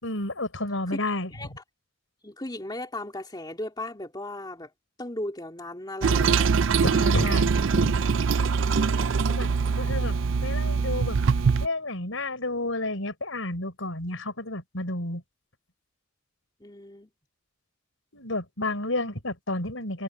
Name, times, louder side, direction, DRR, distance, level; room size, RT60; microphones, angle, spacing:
voice 1, 0.0-1.3 6.8-8.0 9.3-9.5 9.8-11.2 11.6-15.2 18.1-20.0, left 2 dB, 70° left, 5.6 m, -31 dB
voice 2, 2.2-4.7 5.0-6.5 8.9-9.5 16.6-17.1, left 1 dB, 20° left, 2.8 m, -37 dB
Toilet flush, 6.0-11.7, right 5 dB, 65° right, 0.5 m, -23 dB
head